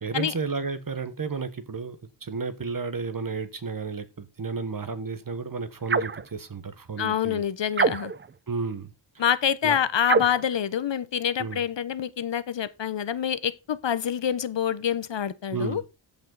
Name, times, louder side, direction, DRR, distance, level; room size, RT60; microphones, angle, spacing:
voice 1, 0.0-7.4 8.5-9.2 9.6-9.8 11.4-11.6 15.5-15.8, right 4 dB, 45° right, 1.3 m, -32 dB
sound 1, 5.9-6.2 7.7-8.3 10.0-10.5, right 4 dB, 25° right, 0.4 m, -25 dB
voice 2, 7.0-8.1 9.2-15.8, left 9 dB, 60° left, 0.9 m, -26 dB
14.0 x 5.4 x 3.9 m
wide cardioid pair, 110°, 48 cm